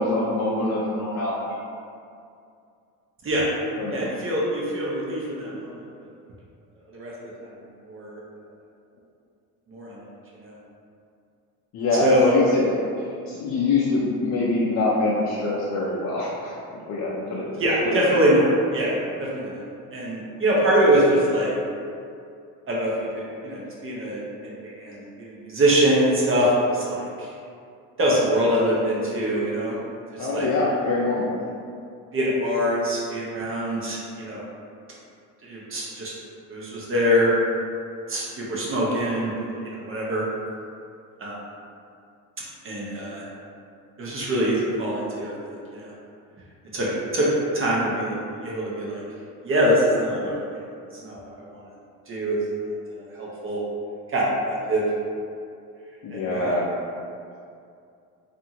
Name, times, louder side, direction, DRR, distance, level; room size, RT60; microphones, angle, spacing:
voice 1, 0.0-1.4 3.8-4.1 11.7-16.6 16.9-17.5 17.8-18.1 30.2-31.3 56.0-56.6, left 2 dB, 50° left, -6 dB, 0.5 m, -24 dB
voice 2, 3.9-5.8 6.9-7.1 7.4-7.5 7.9-8.2 9.7-10.1 10.4-10.5 12.0-12.3 17.6-19.6 19.9-21.5 22.7-27.3 28.0-29.7 30.1-30.5 32.1-34.4 35.4-36.1 36.5-37.3 38.1-39.3 39.6-40.3 41.2-41.4 42.6-43.3 44.0-45.9 46.7-46.9 47.1-49.0 49.4-50.6 51.0-51.6 52.1-52.4 52.9-53.6 54.1-54.8 56.1-56.5, equal, 35° right, -5 dB, 0.7 m, -24 dB
2.6 x 2.5 x 2.8 m, 2.4 s
supercardioid pair, 95°, 37 cm